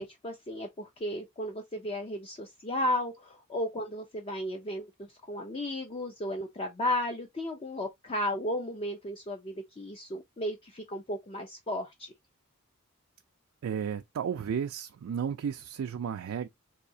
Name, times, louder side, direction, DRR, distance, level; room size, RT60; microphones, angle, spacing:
voice 1, 0.0-12.1, left 1 dB, 25° left, 0.4 m, -34 dB
voice 2, 13.6-16.5, right 7 dB, 75° right, 0.3 m, -33 dB
4.1 x 2.7 x 2.6 m
head